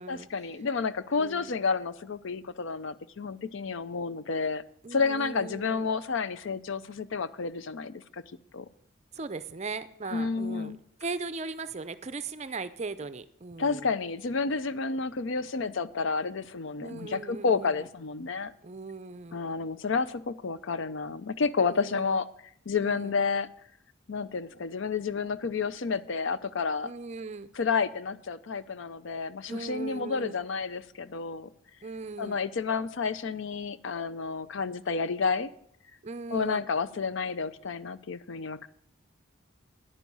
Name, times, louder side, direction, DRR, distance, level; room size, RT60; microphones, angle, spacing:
voice 1, 0.1-4.6 4.9-8.2 8.5-8.7 10.1-10.8 13.6-18.5 19.3-22.3 22.7-23.5 24.1-26.9 27.5-31.5 32.2-35.5 36.3-38.7, left 5 dB, 65° left, 15 dB, 0.5 m, -30 dB
voice 2, 1.2-1.5 4.8-5.9 9.1-13.9 16.8-17.8 18.6-19.4 21.7-22.2 22.8-23.1 26.8-27.5 29.5-30.4 31.8-32.4 36.0-36.6, right 3 dB, 35° right, 13 dB, 0.5 m, -39 dB
10.0 x 9.4 x 5.4 m, 0.67 s
head